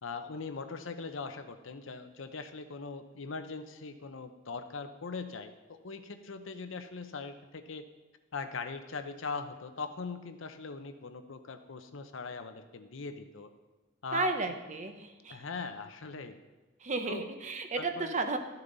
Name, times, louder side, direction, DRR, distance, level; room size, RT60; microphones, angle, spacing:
voice 1, 0.0-7.9 8.3-13.5 14.0-14.4 15.3-16.4 17.1-17.2 17.8-18.2, left 4 dB, 70° left, 8 dB, 0.8 m, -41 dB
voice 2, 14.1-15.4 16.8-18.4, right 3 dB, 35° right, 6 dB, 0.9 m, -33 dB
12.5 x 6.9 x 4.0 m, 1.2 s
head